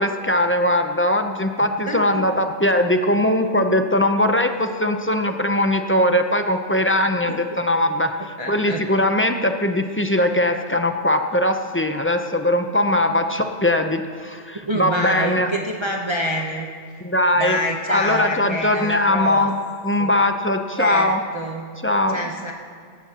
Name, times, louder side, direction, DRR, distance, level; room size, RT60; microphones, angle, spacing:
voice 1, 0.0-15.5 17.0-17.6 17.9-19.5 19.8-21.2 21.8-22.3, left 1 dB, 15° left, 5 dB, 0.5 m, -20 dB
voice 2, 1.9-2.2 7.2-7.4 8.4-8.8 14.6-16.7 17.4-19.5 20.0-20.1 20.8-21.7 22.1-22.5, equal, 25° right, 0 dB, 0.8 m, -27 dB
17.5 x 15.5 x 2.9 m, 2.2 s
omnidirectional pair, 1.2 m